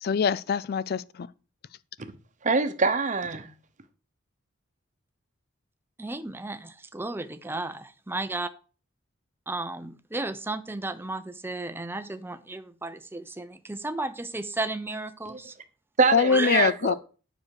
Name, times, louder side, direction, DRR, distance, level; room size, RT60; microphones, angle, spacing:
voice 1, 0.0-1.3 16.1-16.9, left 6 dB, 50° left, 0.4 m, -24 dB
voice 2, 2.4-3.5 16.0-17.0, right 4 dB, 40° right, 1.0 m, -24 dB
voice 3, 6.0-8.5 9.5-15.5 16.3-16.6, right 2 dB, 10° right, 0.6 m, -34 dB
9.8 x 6.3 x 4.8 m
head